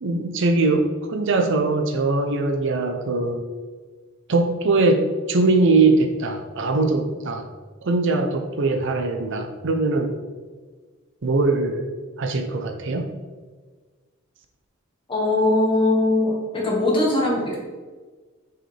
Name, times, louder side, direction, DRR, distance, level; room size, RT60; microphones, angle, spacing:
voice 1, 0.0-3.4 4.3-7.4 7.8-10.1 11.2-11.9 12.2-13.1, right 3 dB, 60° right, 5 dB, 0.6 m, -21 dB
voice 2, 15.1-17.6, left 2 dB, 25° left, -3 dB, 1.5 m, -20 dB
6.2 x 4.7 x 3.3 m, 1.4 s
head